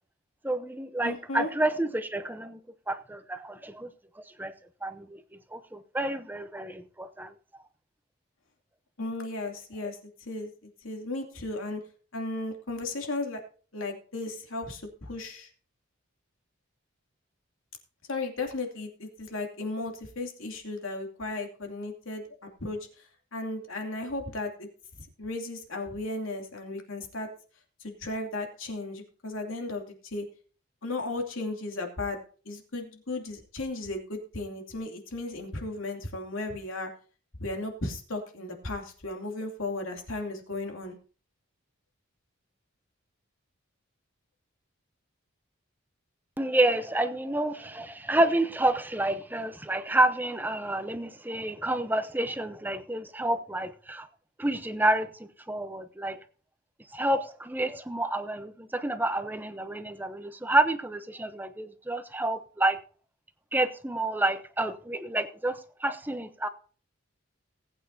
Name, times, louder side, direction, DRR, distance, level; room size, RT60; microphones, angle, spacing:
voice 1, 0.4-2.6 2.9-3.9 4.4-4.5 4.8-5.2 5.5-7.3 46.4-54.1 54.4-55.1 55.5-56.2 56.9-62.8 63.5-66.5, right 1 dB, 10° right, 0.7 m, -29 dB
voice 2, 1.0-1.5 9.0-10.5 10.8-11.8 12.1-13.4 13.7-15.5 18.1-22.2 22.6-22.9 23.3-24.7 25.2-27.3 27.8-30.3 30.8-32.2 32.4-36.9 37.4-41.0, left 2 dB, 75° left, 2.7 m, -35 dB
19.0 x 9.0 x 2.8 m
head